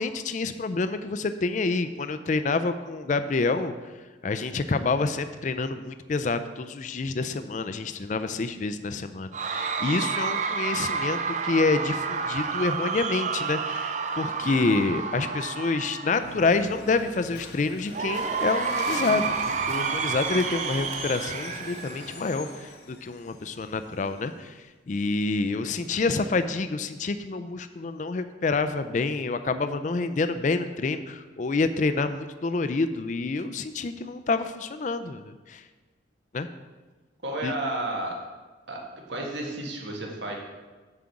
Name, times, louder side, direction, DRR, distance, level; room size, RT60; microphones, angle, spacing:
voice 1, 0.0-3.9 4.2-35.6 36.3-36.5 37.4-37.5, left 3 dB, 40° left, 11 dB, 0.4 m, -28 dB
Cheering / Crowd, 9.3-16.6 17.9-22.6, right 5 dB, 40° right, 0.5 m, -30 dB
voice 2, 14.4-14.9 37.2-38.2 38.7-38.8 39.1-40.4, right 1 dB, 75° right, 0 dB, 1.7 m, -32 dB
sound 1, 16.2-24.3, left 3 dB, 60° left, 0.9 m, -42 dB
7.6 x 4.9 x 7.1 m, 1.3 s
head